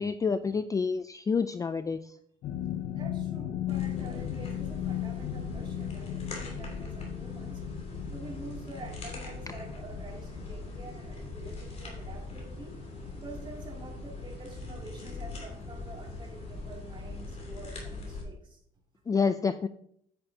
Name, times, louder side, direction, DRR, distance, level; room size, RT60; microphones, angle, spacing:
voice 1, 0.0-2.1 19.1-19.7, left 5 dB, 20° left, 11 dB, 0.3 m, -28 dB
sound 1, 2.4-13.1 13.4-13.8 14.1-14.3, left 11 dB, 65° left, 0.7 m, -37 dB
voice 2, 2.9-7.6 8.1-12.7 13.1-18.6, right 3 dB, 30° right, -1 dB, 2.6 m, -47 dB
sound 2, 3.7-18.2, left 2 dB, 40° left, 3.0 m, -41 dB
9.0 x 8.8 x 2.8 m, 0.69 s
cardioid pair, 110°, 17 cm